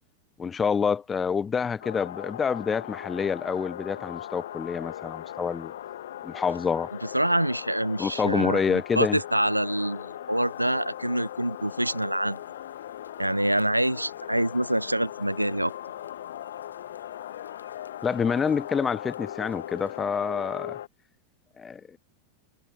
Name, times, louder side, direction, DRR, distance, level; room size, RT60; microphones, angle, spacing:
voice 1, 0.4-5.7 6.2-6.9 8.0-9.2 18.0-20.8 21.6-22.0, left 6 dB, 20° left, 0.5 m, -27 dB
sound 1, 1.8-20.9, left 12 dB, 60° left, 0.6 m, -39 dB
voice 2, 7.1-12.4 13.2-15.7, right 1 dB, 85° right, 0.3 m, -26 dB
sound 2, 10.4-20.0, left 3 dB, 80° left, 7.8 m, -64 dB
figure-of-eight pair, 90°, 0 cm